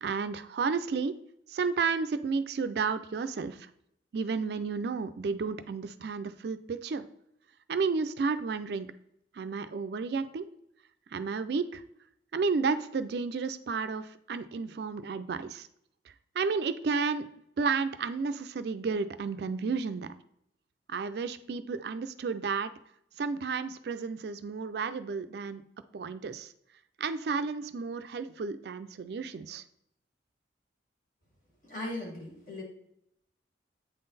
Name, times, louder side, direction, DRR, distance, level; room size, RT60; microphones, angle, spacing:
voice 1, 0.0-1.2 1.5-3.7 4.1-7.1 7.7-8.9 9.3-10.5 11.1-11.8 12.3-15.7 16.3-17.2 17.6-20.1 20.9-22.7 23.2-25.6 25.9-26.5 27.0-29.6, right 4 dB, 60° right, 11 dB, 0.3 m, -32 dB
voice 2, 31.7-32.6, left 1 dB, 45° left, -2 dB, 2.1 m, -38 dB
8.5 x 3.8 x 4.0 m, 0.76 s
head